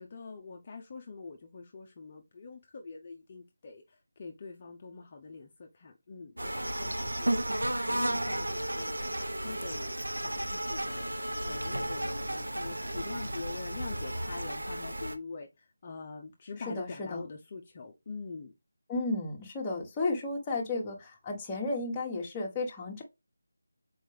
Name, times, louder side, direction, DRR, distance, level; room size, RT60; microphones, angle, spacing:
voice 1, 0.0-7.3 7.8-9.0 9.4-9.9 10.2-18.5, left 4 dB, 30° left, 0.7 m, -44 dB
sound 1, 6.4-15.2, right 1 dB, 90° right, 1.0 m, -33 dB
voice 2, 16.7-17.2 18.9-23.0, left 2 dB, 15° left, 1.3 m, -33 dB
6.3 x 4.6 x 3.4 m
figure-of-eight pair, 165°, 0 cm